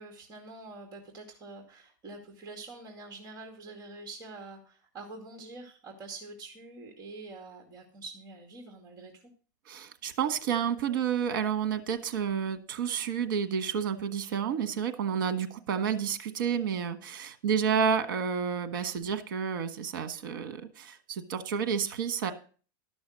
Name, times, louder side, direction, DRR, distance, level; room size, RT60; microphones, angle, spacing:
voice 1, 0.0-9.2, right 3 dB, 35° right, 3 dB, 2.3 m, -46 dB
voice 2, 9.7-22.3, right 7 dB, 70° right, 11 dB, 1.4 m, -30 dB
12.5 x 6.2 x 6.4 m, 0.40 s
supercardioid pair, 140°, 11 cm